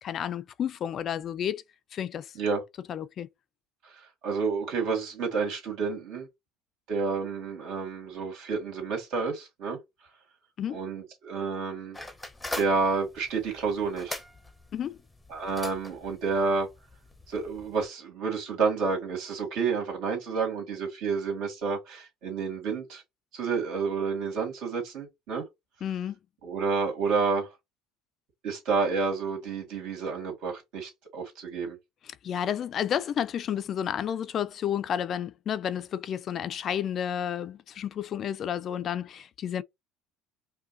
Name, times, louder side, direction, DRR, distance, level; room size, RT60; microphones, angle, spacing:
voice 1, 0.0-1.6 1.9-2.3 2.9-3.3 10.6-10.8 14.7-15.0 25.8-26.2 32.2-39.6, left 9 dB, 45° left, 0.3 m, -31 dB
voice 2, 3.8-6.3 6.9-9.8 10.7-12.0 12.6-14.2 15.3-16.7 17.3-23.0 23.3-25.5 26.4-27.5 28.4-31.8, right 4 dB, 70° right, 1.9 m, -30 dB
sound 1, 11.9-17.9, left 1 dB, 10° left, 0.6 m, -42 dB
5.1 x 2.2 x 2.6 m
supercardioid pair, 115°, 0 cm